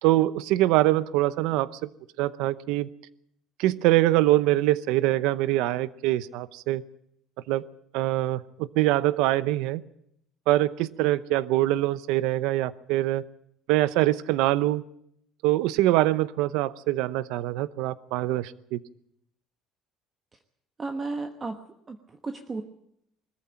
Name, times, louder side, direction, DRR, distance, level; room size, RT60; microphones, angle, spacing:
voice 1, 0.0-1.7 2.2-2.9 3.6-6.8 7.5-7.6 7.9-9.8 10.5-13.2 13.7-14.8 15.4-18.8, right 16 dB, 80° right, 17 dB, 0.8 m, -24 dB
voice 2, 20.8-21.6 21.9-22.6, right 3 dB, 20° right, 6 dB, 1.2 m, -33 dB
21.0 x 14.0 x 8.9 m, 0.72 s
cardioid pair, 145°, 0 cm